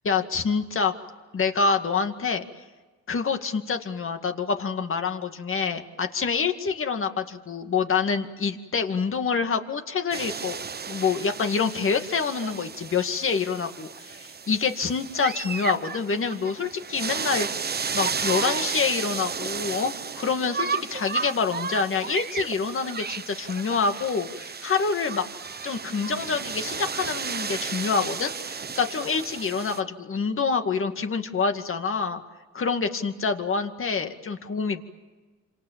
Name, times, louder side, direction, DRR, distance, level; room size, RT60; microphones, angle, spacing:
voice 1, 0.0-0.9 1.3-2.5 3.1-10.6 10.9-17.5 17.9-25.2 25.6-32.2 32.5-34.8, left 5 dB, 45° left, 6 dB, 2.2 m, -26 dB
sound 1, 10.1-29.8, right 5 dB, 35° right, 1.1 m, -33 dB
28.0 x 26.5 x 7.5 m, 1.3 s
cardioid pair, 90°, 30 cm